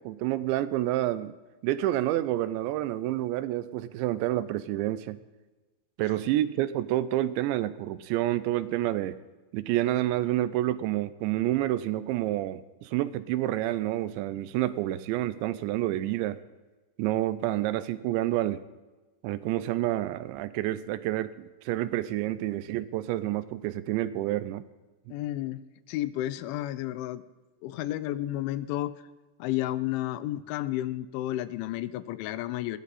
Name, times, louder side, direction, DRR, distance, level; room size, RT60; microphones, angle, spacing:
voice 1, 0.1-1.4 1.6-5.2 6.0-9.2 9.5-16.4 17.0-18.6 19.2-24.6, right 14 dB, 80° right, 15 dB, 2.9 m, -29 dB
voice 2, 25.1-25.6 25.9-27.2 27.6-29.0 29.4-32.8, left 14 dB, 85° left, 15 dB, 3.2 m, -31 dB
20.0 x 16.0 x 4.2 m, 1.2 s
omnidirectional pair, 5.3 m